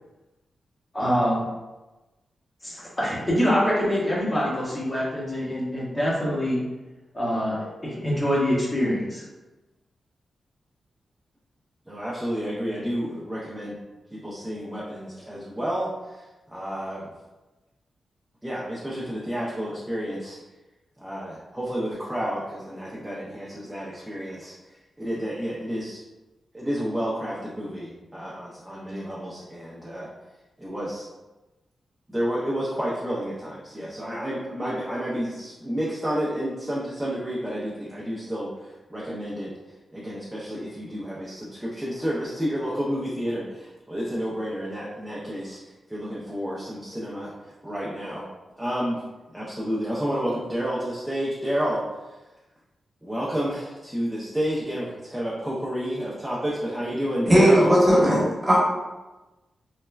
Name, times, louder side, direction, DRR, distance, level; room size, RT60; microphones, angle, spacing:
voice 1, 0.9-1.4 2.6-6.6 7.1-9.2, equal, 25° left, -6 dB, 0.9 m, -25 dB
voice 2, 11.9-13.8 14.1-16.2 16.5-17.1 18.4-20.4 21.0-24.5 25.0-26.0 26.5-30.1 30.6-31.0 32.1-39.5 39.9-45.6 45.9-47.3 47.6-48.3 48.6-49.0 49.3-51.8 52.1-52.2 53.0-57.7, equal, 10° right, -6 dB, 0.5 m, -30 dB
voice 3, 57.3-58.6, equal, 30° right, -5 dB, 1.3 m, -17 dB
3.1 x 2.1 x 2.3 m, 1.1 s
cardioid pair, 65°, 0 cm